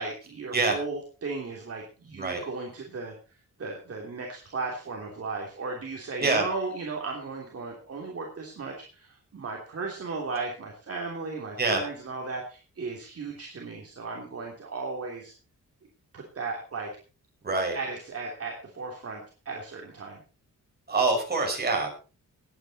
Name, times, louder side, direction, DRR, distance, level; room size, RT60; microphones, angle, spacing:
voice 1, 0.0-3.1 3.6-15.3 16.1-16.9 17.7-20.2, right 3 dB, 45° right, 0 dB, 3.0 m, -36 dB
voice 2, 2.1-2.4 6.2-6.5 11.6-11.8 17.4-17.8 20.9-21.9, right 3 dB, 30° right, 1 dB, 5.6 m, -25 dB
19.0 x 9.3 x 4.2 m, 0.35 s
wide cardioid pair, 140°, 33 cm